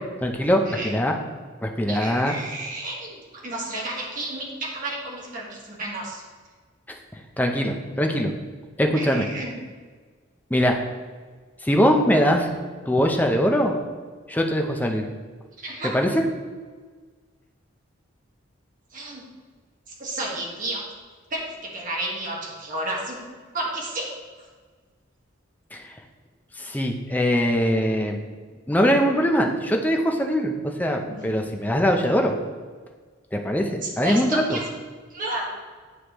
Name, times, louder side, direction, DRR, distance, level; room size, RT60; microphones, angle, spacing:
voice 1, 0.2-1.2 1.6-2.4 6.9-7.0 7.4-8.3 8.8-9.3 10.5-10.8 11.6-12.5 12.8-13.7 14.3-15.1 15.9-16.3 25.7-25.9 26.6-28.2 28.7-32.3 33.3-34.6, equal, 10° left, 2 dB, 0.6 m, -22 dB
voice 2, 1.9-6.2 8.9-9.5 15.6-16.1 18.9-19.2 20.0-20.8 21.3-23.2 23.5-24.1 31.1-31.2 33.8-34.6 35.1-35.5, right 2 dB, 45° right, -3 dB, 1.4 m, -32 dB
9.5 x 4.9 x 3.0 m, 1.5 s
head